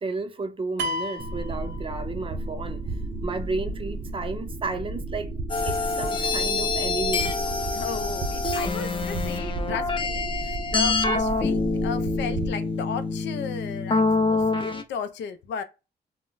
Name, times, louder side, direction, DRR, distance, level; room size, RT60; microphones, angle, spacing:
voice 1, 0.0-5.3 5.6-7.4, right 3 dB, 30° right, 0.5 m, -32 dB
sound 1, 0.8-2.5, equal, 90° right, 0.4 m, -33 dB
sound 2, 1.2-12.5, right 2 dB, 65° right, 0.8 m, -33 dB
sound 3, 5.5-14.8, left 3 dB, 30° left, 0.5 m, -26 dB
voice 2, 7.7-15.6, left 6 dB, 90° left, 0.4 m, -35 dB
2.1 x 2.0 x 3.8 m
cardioid pair, 80°, 18 cm